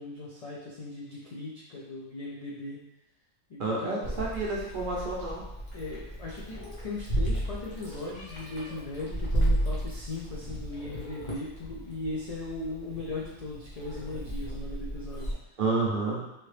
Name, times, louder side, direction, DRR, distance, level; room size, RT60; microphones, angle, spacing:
voice 1, 0.0-2.8 3.5-4.1 5.7-15.3, left 2 dB, 80° left, -5 dB, 0.3 m, -38 dB
voice 2, 3.6-5.4 15.6-16.3, right 3 dB, 55° right, -4 dB, 0.6 m, -29 dB
Meow, 4.0-15.3, right 1 dB, 40° left, 1.0 m, -33 dB
3.1 x 2.8 x 3.2 m, 0.89 s
omnidirectional pair, 1.4 m